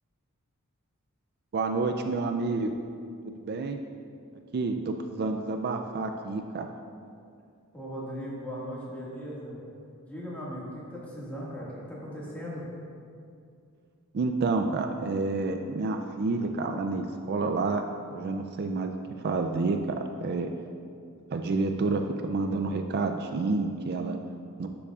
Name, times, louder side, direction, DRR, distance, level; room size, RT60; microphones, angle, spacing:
voice 1, 1.5-2.7 3.4-3.8 4.5-6.7 14.1-17.8 18.1-20.0 20.2-20.5 21.3-24.2 24.6-24.7, right 3 dB, 45° right, 5 dB, 0.4 m, -29 dB
voice 2, 7.7-9.6 10.1-12.7, equal, 5° left, -7 dB, 1.8 m, -38 dB
12.0 x 7.0 x 2.4 m, 2.4 s
head